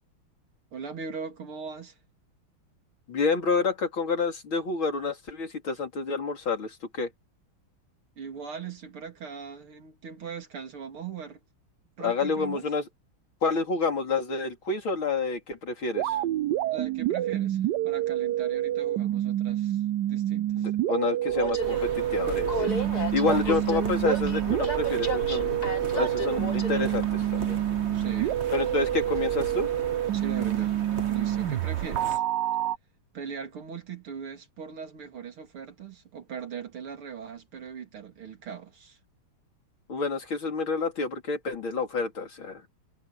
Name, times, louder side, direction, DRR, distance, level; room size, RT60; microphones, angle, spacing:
voice 1, 0.7-2.0 8.2-11.4 12.0-12.7 16.6-20.7 22.5-22.9 23.2-23.6 27.9-28.4 30.1-30.7 31.1-32.2 33.1-39.0, right 7 dB, 90° right, 3.8 m, -39 dB
voice 2, 3.1-7.1 12.0-12.8 13.4-16.2 20.6-22.7 23.1-25.6 25.9-27.6 28.5-29.7 39.9-42.7, left 4 dB, 70° left, 4.3 m, -29 dB
sound 1, 16.0-32.8, right 13 dB, 70° right, 1.1 m, -28 dB
Train, 21.3-29.9, right 1 dB, 45° left, 4.6 m, -35 dB
sound 2, 21.6-32.2, right 4 dB, 35° right, 1.6 m, -38 dB
omnidirectional pair, 2.3 m